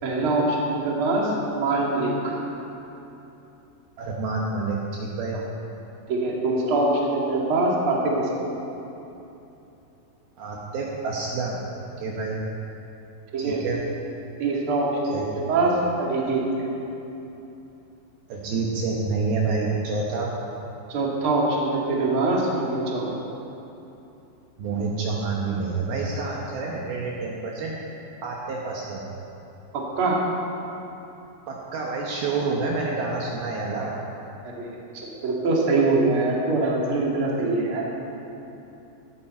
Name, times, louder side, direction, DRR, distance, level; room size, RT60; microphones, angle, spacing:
voice 1, 0.0-2.4 6.1-8.4 13.3-13.6 14.4-15.2 15.5-15.7 16.0-16.7 20.9-23.0 29.7-30.2 34.4-34.7 34.9-37.8, right 2 dB, 35° right, -3 dB, 2.5 m, -23 dB
voice 2, 4.0-5.4 10.4-11.6 12.0-12.4 13.4-13.8 15.1-15.3 18.3-20.3 24.6-27.7 28.2-29.0 31.5-34.0, right 3 dB, 70° right, -3 dB, 2.8 m, -28 dB
17.0 x 14.0 x 4.4 m, 3.0 s
omnidirectional pair, 5.0 m